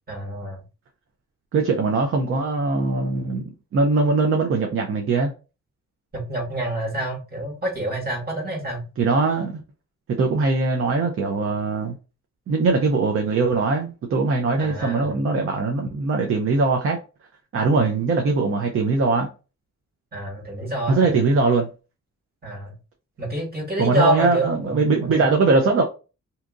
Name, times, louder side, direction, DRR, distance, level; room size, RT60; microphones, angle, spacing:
voice 1, 0.1-0.6 6.1-8.8 14.6-15.2 17.7-17.9 20.1-21.1 22.4-22.7 23.2-25.6, right 2 dB, 30° right, 1.5 m, -28 dB
voice 2, 1.5-5.3 9.0-9.6 10.2-11.9 12.5-17.0 17.5-19.3 20.9-21.7 23.8-25.8, right 3 dB, 50° right, 0.5 m, -21 dB
2.8 x 2.5 x 3.5 m
wide cardioid pair, 160°, 29 cm